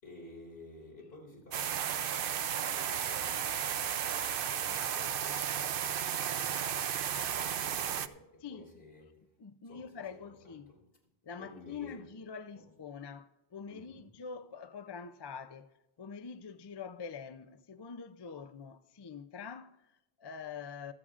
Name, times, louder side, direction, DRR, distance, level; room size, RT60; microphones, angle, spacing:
voice 1, 0.0-7.0 7.3-9.4 9.6-10.9 11.3-12.2 12.5-12.6 13.7-14.2, left 1 dB, 75° left, 4.1 m, -53 dB
sound 1, 1.5-8.1, right 9 dB, 65° right, 0.7 m, -34 dB
voice 2, 9.4-10.8 11.2-20.9, left 6 dB, 40° left, 0.4 m, -45 dB
25.5 x 8.6 x 2.5 m
omnidirectional pair, 1.0 m